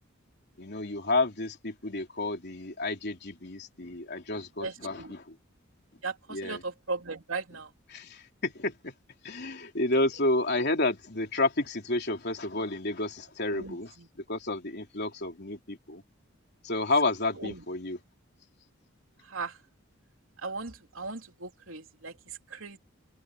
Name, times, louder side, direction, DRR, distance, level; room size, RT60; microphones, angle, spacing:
voice 1, 0.6-5.4 6.3-6.6 7.9-8.9 9.2-13.9 14.3-16.0 16.6-18.0, left 2 dB, 55° left, 3.6 m, -30 dB
voice 2, 4.6-5.1 6.0-7.7 13.5-14.1 17.4-17.6 19.2-19.6 20.4-22.8, right 4 dB, 80° right, 3.2 m, -38 dB
head